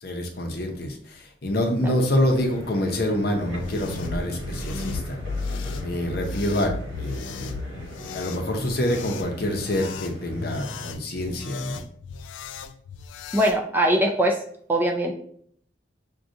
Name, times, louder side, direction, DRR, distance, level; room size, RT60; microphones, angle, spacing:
voice 1, 0.0-5.2 5.8-7.5 8.1-11.8, left 1 dB, 55° left, 2 dB, 0.7 m, -26 dB
sound 1, 1.8-10.9, right 1 dB, 90° right, 1.1 m, -40 dB
sound 2, 3.4-13.6, left 3 dB, 80° left, 0.3 m, -35 dB
voice 2, 13.3-14.4 14.7-15.1, right 1 dB, 10° right, 1 dB, 0.3 m, -21 dB
6.2 x 2.3 x 2.6 m, 0.62 s
head